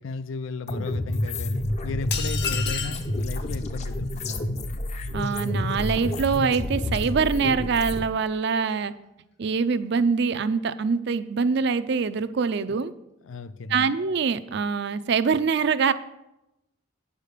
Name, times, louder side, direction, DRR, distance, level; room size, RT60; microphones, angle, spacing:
voice 1, 0.0-4.5 13.2-13.9, left 4 dB, 85° left, 13 dB, 0.5 m, -35 dB
sound 1, 0.7-8.0, left 1 dB, 35° left, 0.6 m, -29 dB
sound 2, 2.1-3.1, left 6 dB, 60° left, 1.0 m, -29 dB
voice 2, 5.1-8.9 9.4-12.9 13.7-15.9, right 5 dB, 60° right, 13 dB, 0.4 m, -24 dB
9.2 x 5.1 x 6.5 m, 0.90 s
head